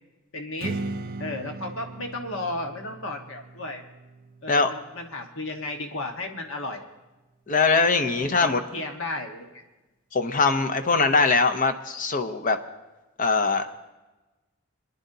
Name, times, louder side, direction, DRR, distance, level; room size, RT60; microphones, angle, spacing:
voice 1, 0.3-0.8 1.2-3.8 4.4-6.9 8.2-9.6, left 2 dB, 70° left, 3 dB, 1.3 m, -34 dB
Strum, 0.6-5.8, right 3 dB, 45° right, 0.4 m, -38 dB
voice 2, 7.5-8.6 10.1-12.6 13.2-13.7, left 4 dB, 40° left, 8 dB, 0.7 m, -22 dB
25.5 x 10.5 x 2.7 m, 1.1 s
head